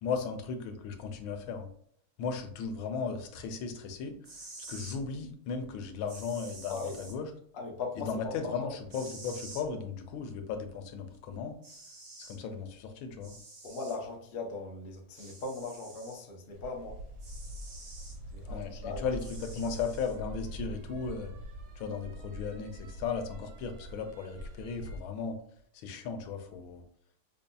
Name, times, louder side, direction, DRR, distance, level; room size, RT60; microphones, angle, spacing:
voice 1, 0.0-1.7 2.2-4.1 4.7-7.3 8.0-11.6 12.2-13.4 18.5-21.3 21.8-25.4 25.7-26.8, left 5 dB, 80° left, 1.4 m, -36 dB
sound 1, 4.2-5.0 6.1-7.2 8.9-9.7 11.1-11.2 11.6-12.4 13.2-14.0 15.1-16.2 17.2-18.2 19.2-20.2, right 2 dB, 55° right, 1.5 m, -48 dB
voice 2, 6.7-7.1 7.5-8.7 13.6-17.0 18.3-19.1, left 3 dB, 65° left, 0.5 m, -39 dB
sound 2, 16.5-25.0, equal, 80° right, 0.7 m, -44 dB
5.2 x 2.6 x 2.2 m
omnidirectional pair, 2.2 m